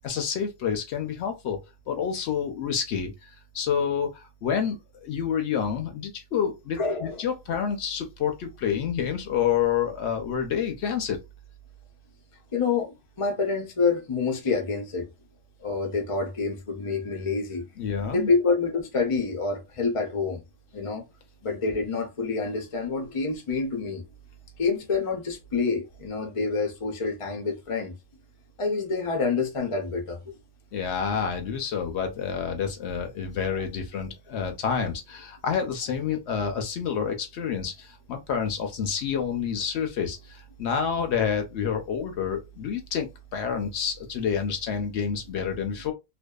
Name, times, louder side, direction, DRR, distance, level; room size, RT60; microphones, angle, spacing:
voice 1, 0.0-1.6 1.9-3.1 3.5-11.2 17.8-18.3 30.7-45.9, left 7 dB, 65° left, 0.8 m, -28 dB
voice 2, 6.8-7.2 12.5-15.1 15.6-17.6 18.1-20.4 20.7-21.0 21.4-24.0 24.6-27.9 28.6-30.4, left 4 dB, 50° left, 0.4 m, -27 dB
2.6 x 2.2 x 2.2 m
omnidirectional pair, 1.4 m